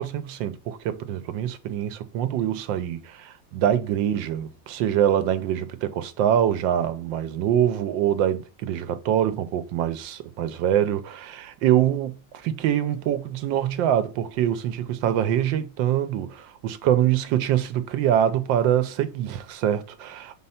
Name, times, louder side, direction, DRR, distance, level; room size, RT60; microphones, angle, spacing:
voice 1, 0.0-20.3, right 10 dB, 85° right, 1.4 m, -24 dB
4.3 x 4.1 x 5.6 m
omnidirectional pair, 2.0 m